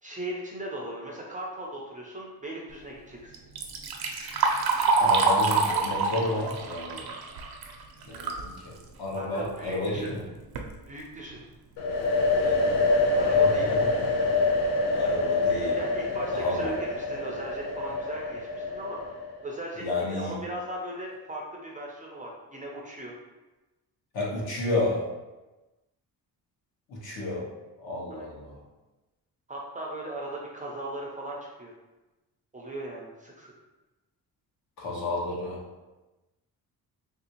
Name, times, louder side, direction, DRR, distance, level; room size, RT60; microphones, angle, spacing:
voice 1, 0.0-3.3 9.2-10.1 10.9-11.4 13.1-13.7 15.8-19.0 19.4-23.1 28.1-28.3 29.5-31.7 32.5-33.5, right 1 dB, 20° right, -2 dB, 0.3 m, -38 dB
Liquid, 3.3-8.5 8.9-9.0 9.8-9.9 10.4-10.7 11.3-11.4 11.9-12.0 12.4-12.7, right 4 dB, 70° right, 0.5 m, -26 dB
voice 2, 5.0-7.1 8.0-8.7 9.0-10.2 14.0-14.1 14.9-15.8 16.3-16.8 19.8-20.3 24.1-25.0 26.9-27.5 27.8-28.6 34.8-35.6, left 2 dB, 70° left, -3 dB, 1.0 m, -31 dB
sound 1, 11.8-19.4, left 3 dB, 90° left, 0.6 m, -26 dB
3.3 x 2.6 x 2.8 m, 1.1 s
wide cardioid pair, 165°, 38 cm